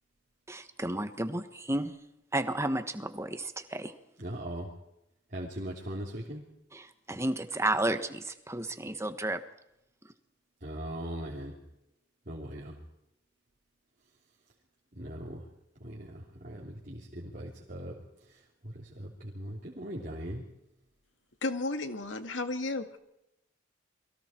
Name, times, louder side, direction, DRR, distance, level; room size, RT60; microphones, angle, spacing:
voice 1, 0.5-1.9 2.3-3.9 6.7-9.4, right 1 dB, 15° right, 9 dB, 1.4 m, -32 dB
voice 2, 4.2-4.7 5.3-6.4 10.6-11.5 12.3-12.8 15.0-15.4 15.8-18.0 18.3-20.4, right 1 dB, 45° right, -4 dB, 3.5 m, -40 dB
voice 3, 21.4-23.0, left 2 dB, 80° left, 7 dB, 2.1 m, -33 dB
29.0 x 22.5 x 4.6 m, 0.85 s
head